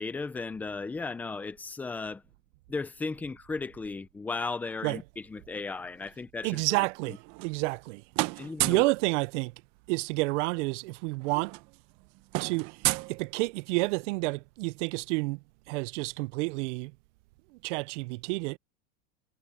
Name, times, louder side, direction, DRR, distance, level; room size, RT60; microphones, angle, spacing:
voice 1, 0.0-2.2 2.7-7.2 8.4-8.9, left 4 dB, 5° left, 0.3 m, -36 dB
voice 2, 6.4-8.0 8.3-9.5 9.9-11.5 12.4-16.9 17.6-18.6, right 25 dB, 60° right, 0.5 m, -30 dB
sound 1, 7.1-7.9 8.1-9.0 10.3-10.4 10.7-10.9 11.2-13.8, right 21 dB, 45° right, 0.9 m, -33 dB
supercardioid pair, 150°, 40 cm